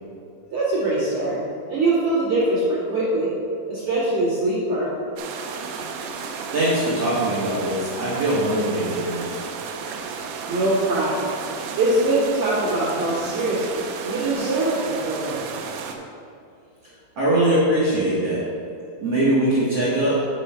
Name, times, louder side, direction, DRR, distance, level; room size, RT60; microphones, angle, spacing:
voice 1, 0.5-1.4 1.7-3.3 3.7-4.9 10.5-11.3 11.8-15.5, right 2 dB, 40° right, -10 dB, 2.1 m, -23 dB
sound 1, 5.2-16.0, right 5 dB, 85° right, 2.4 m, -33 dB
voice 2, 6.1-9.2 17.2-18.4 19.0-20.2, right 1 dB, 70° right, -9 dB, 1.4 m, -22 dB
7.0 x 5.5 x 5.6 m, 2.6 s
omnidirectional pair, 5.3 m